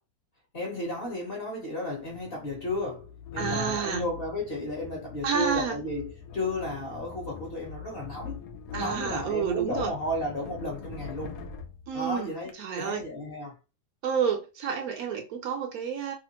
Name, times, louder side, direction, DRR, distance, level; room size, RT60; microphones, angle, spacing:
voice 1, 0.5-8.4 8.7-11.4 11.9-13.5, left 1 dB, 40° left, 1.0 m, -33 dB
sound 1, 2.0-12.5, left 6 dB, 85° left, 1.2 m, -42 dB
voice 2, 3.4-4.0 5.2-5.8 8.7-9.9 11.9-12.3 12.6-13.0 14.0-16.1, right 7 dB, 70° right, 1.1 m, -29 dB
2.8 x 2.5 x 2.8 m
omnidirectional pair, 1.7 m